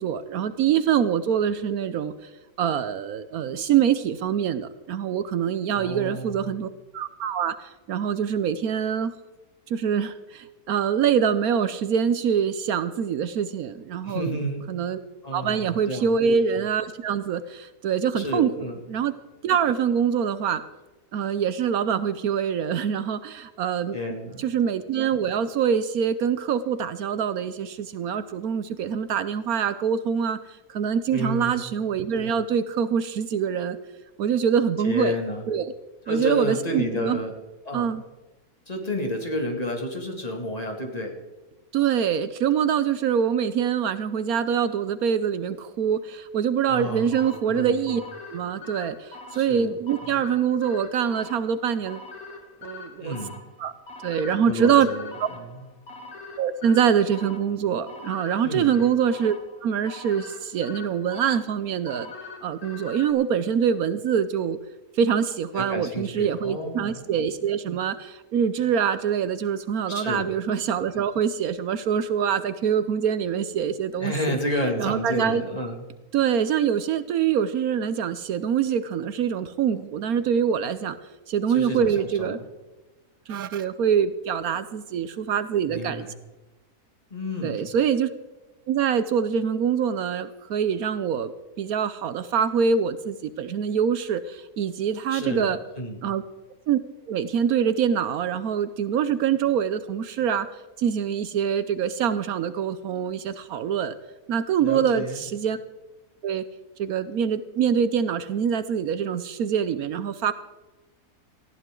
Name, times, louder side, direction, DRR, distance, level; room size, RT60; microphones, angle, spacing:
voice 1, 0.0-2.3 2.6-9.1 9.7-14.4 14.7-15.0 15.3-18.5 18.9-19.1 19.4-20.6 21.1-24.0 24.4-33.8 34.2-35.1 35.5-35.7 36.1-37.2 37.7-38.0 41.7-48.0 48.3-52.1 52.6-53.2 53.6-53.7 54.0-54.9 55.2-55.3 56.4-59.3 59.6-62.1 62.4-64.6 64.9-75.4 76.1-81.0 81.3-82.4 83.3-86.1 87.4-88.1 88.7-91.3 91.6-95.6 96.0-96.2 96.7-96.8 97.1-100.5 100.8-103.9 104.3-105.6 106.2-106.4 106.8-110.3, right 8 dB, 75° right, 13 dB, 1.1 m, -24 dB
voice 2, 5.7-6.5 14.0-14.6 15.2-16.2 18.2-18.8 23.9-24.5 31.1-31.6 34.8-35.4 36.1-37.3 37.6-37.9 38.7-41.2 46.7-47.2 47.5-48.0 49.3-49.7 50.0-50.2 53.0-53.4 54.5-55.5 58.4-58.7 65.5-67.0 69.9-70.3 74.0-75.8 81.5-82.4 85.7-86.1 87.1-87.6 95.1-96.0 104.6-105.2, left 1 dB, 25° left, 2 dB, 2.4 m, -31 dB
sound 1, 47.1-63.1, left 3 dB, 70° left, 2.3 m, -43 dB
19.0 x 15.0 x 3.8 m, 1.1 s
omnidirectional pair, 1.6 m